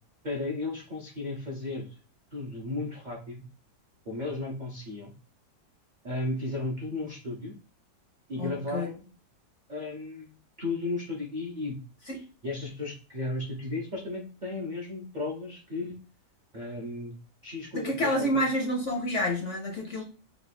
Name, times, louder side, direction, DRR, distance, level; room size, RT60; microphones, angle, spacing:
voice 1, 0.2-1.9 2.3-3.4 4.1-5.1 6.0-7.5 8.3-9.1 9.7-10.3 10.6-11.8 12.0-15.9 16.5-17.1 17.4-18.4, left 2 dB, 55° right, -3 dB, 0.5 m, -34 dB
voice 2, 8.4-8.9 12.1-12.2 17.7-20.0, equal, 60° left, 0 dB, 0.8 m, -28 dB
3.5 x 2.3 x 4.0 m, 0.37 s
omnidirectional pair, 1.9 m